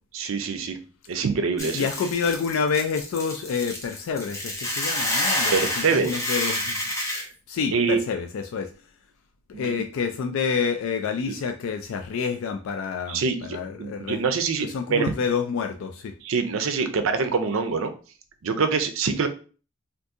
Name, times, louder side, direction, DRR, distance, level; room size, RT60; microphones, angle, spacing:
voice 1, 0.1-0.8 1.1-1.9 5.5-6.2 7.1-7.3 7.7-8.0 9.5-9.8 11.3-11.4 13.1-15.1 16.2-17.9 18.4-19.3, right 5 dB, 80° right, 8 dB, 0.5 m, -25 dB
Hiss / Boiling, 1.6-7.2, left 1 dB, 15° left, 0.7 m, -28 dB
voice 2, 1.7-6.8 7.5-8.7 9.5-14.2 14.6-16.1, left 6 dB, 80° left, 5 dB, 0.3 m, -28 dB
2.6 x 2.5 x 3.6 m, 0.37 s
head